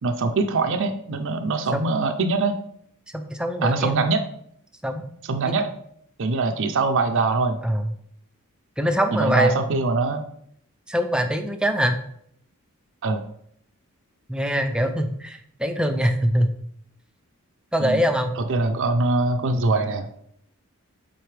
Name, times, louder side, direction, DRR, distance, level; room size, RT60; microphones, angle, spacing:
voice 1, 0.0-2.6 3.6-4.2 5.3-5.7 6.2-7.6 9.1-10.2 13.0-13.2 17.8-18.0 18.4-20.1, right 3 dB, 60° right, 6 dB, 0.5 m, -23 dB
voice 2, 3.1-4.0 4.8-5.0 5.4-5.5 7.6-7.8 8.8-9.8 10.9-12.0 14.3-16.5 17.7-18.4, equal, 5° right, 6 dB, 0.4 m, -23 dB
7.7 x 4.1 x 3.3 m, 0.68 s
head